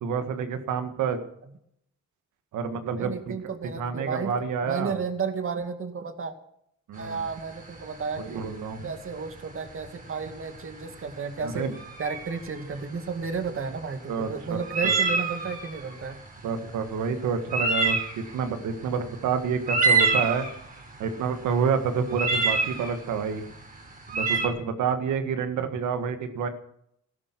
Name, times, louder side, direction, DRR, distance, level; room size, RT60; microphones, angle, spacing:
voice 1, 0.0-1.2 2.5-3.1 3.8-5.0 6.9-7.2 8.2-8.9 11.4-11.7 14.1-14.9 16.4-20.5 21.0-23.4 24.1-26.5, right 6 dB, 80° right, 8 dB, 1.8 m, -28 dB
voice 2, 3.0-4.4 4.6-6.3 7.0-8.5 8.8-11.7 12.0-16.2, right 5 dB, 45° right, 7 dB, 2.2 m, -33 dB
sound 1, 7.0-24.5, right 4 dB, 30° right, 3.8 m, -28 dB
15.0 x 12.0 x 6.2 m, 0.73 s
cardioid pair, 90°, 30 cm